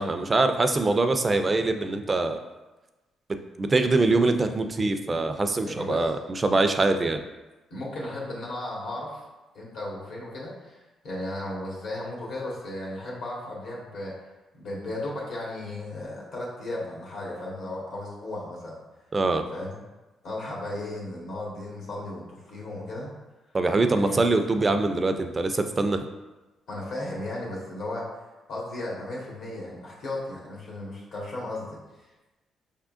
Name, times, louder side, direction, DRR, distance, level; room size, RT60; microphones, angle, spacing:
voice 1, 0.0-2.4 3.6-7.2 19.1-19.5 23.5-26.0, right 3 dB, 30° right, 8 dB, 0.4 m, -23 dB
voice 2, 5.6-6.0 7.7-9.2 9.5-14.1 14.5-18.7 19.5-19.8 20.2-23.1 24.0-24.2 26.7-28.1 28.5-31.8, left 1 dB, 75° left, -4 dB, 1.5 m, -35 dB
5.5 x 3.6 x 2.4 m, 1.1 s
cardioid pair, 90°, 0 cm